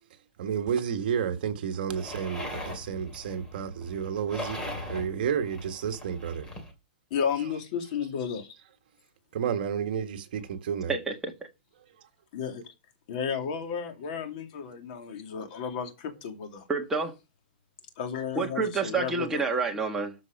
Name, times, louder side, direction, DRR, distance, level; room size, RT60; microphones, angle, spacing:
voice 1, 0.4-4.6 4.9-6.5 9.3-10.9, right 7 dB, 55° right, 1.7 m, -31 dB
sound 1, 1.9-6.7, left 2 dB, 10° left, 2.7 m, -40 dB
voice 2, 7.1-8.5 12.3-12.7 13.1-16.6 18.0-19.4, left 7 dB, 45° left, 2.7 m, -33 dB
voice 3, 10.9-11.3 16.7-17.1 18.3-20.1, right 4 dB, 5° right, 1.5 m, -28 dB
13.0 x 5.2 x 5.3 m
hypercardioid pair, 165°, 6 cm